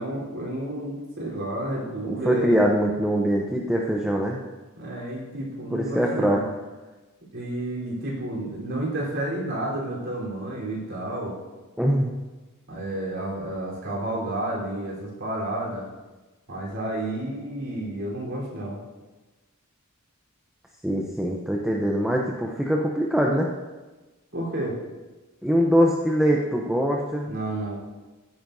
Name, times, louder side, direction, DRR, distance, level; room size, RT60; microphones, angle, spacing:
voice 1, 0.0-2.6 4.8-6.5 7.3-11.4 12.7-15.9 16.5-18.8 24.3-24.7 27.3-27.8, right 1 dB, 60° right, -5 dB, 3.7 m, -31 dB
voice 2, 2.0-4.4 5.7-6.4 11.8-12.1 20.8-23.5 25.4-27.3, equal, 5° right, -2 dB, 0.6 m, -23 dB
14.5 x 9.4 x 2.7 m, 1.2 s
head